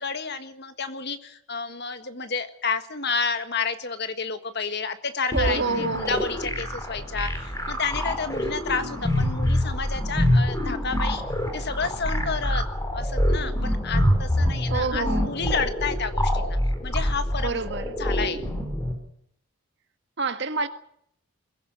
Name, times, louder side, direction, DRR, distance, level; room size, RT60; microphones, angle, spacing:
voice 1, 0.0-11.2 11.5-12.6 12.9-16.6 16.8-17.6 18.0-18.4, left 5 dB, 50° left, 1.7 m, -30 dB
sound 1, 5.3-18.9, left 1 dB, 15° left, 4.3 m, -26 dB
voice 2, 5.3-6.2 14.7-15.4 17.4-17.9 20.2-20.7, right 3 dB, 50° right, 1.7 m, -27 dB
22.5 x 15.5 x 8.8 m
head